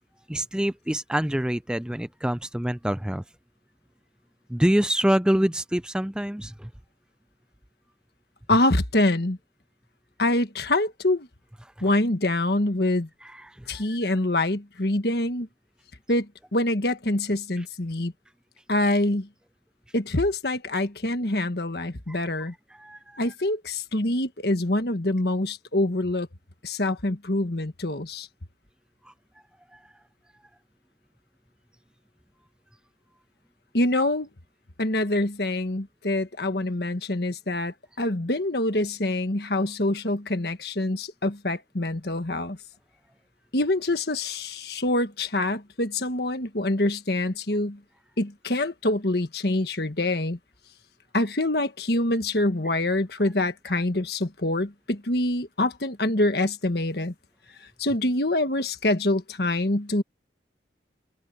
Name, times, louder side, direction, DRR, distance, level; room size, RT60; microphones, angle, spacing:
voice 1, 0.3-3.2 4.5-6.7 13.2-14.1 17.6-17.7 22.1-22.3 22.7-23.2 29.0-29.1 29.7-29.8 53.7-53.8, equal, 5° right, 0.4 m, -26 dB
voice 2, 8.5-9.4 10.2-11.3 11.8-13.1 13.7-15.5 16.1-16.3 16.5-18.1 18.7-19.3 19.9-22.5 23.2-26.3 26.6-28.3 33.7-34.3 34.8-42.6 43.5-47.8 48.2-50.4 51.1-57.1 57.8-60.0, left 1 dB, 60° left, 1.6 m, -25 dB
open air
head